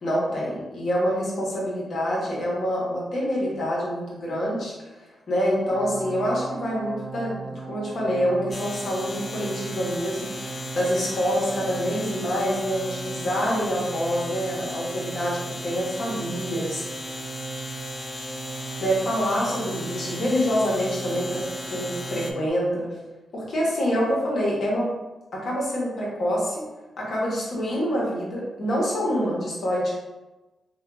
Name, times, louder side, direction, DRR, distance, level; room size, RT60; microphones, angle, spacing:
voice 1, 0.0-4.7 5.3-17.0 18.6-22.9 23.3-24.9 25.3-26.6 27.0-30.0, equal, 65° left, -5 dB, 1.1 m, -26 dB
sound 1, 5.7-22.5, right 4 dB, 25° right, 0.4 m, -38 dB
sound 2, 8.5-22.3, left 2 dB, 40° left, 0.4 m, -37 dB
2.7 x 2.3 x 3.5 m, 1.1 s
cardioid pair, 55°, 0 cm